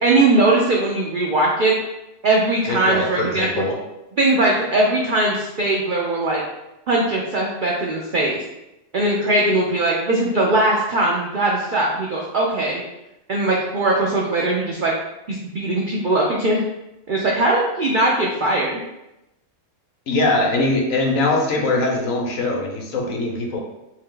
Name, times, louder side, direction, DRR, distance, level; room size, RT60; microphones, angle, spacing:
voice 1, 0.0-1.7 2.2-3.5 4.2-6.4 6.9-8.4 8.9-12.8 13.3-14.9 15.3-16.6 17.1-18.8, right 2 dB, 90° right, -3 dB, 0.4 m, -20 dB
voice 2, 2.7-3.8 20.1-23.6, left 2 dB, 65° left, 1 dB, 1.1 m, -22 dB
3.3 x 2.8 x 3.7 m, 0.92 s
omnidirectional pair, 1.6 m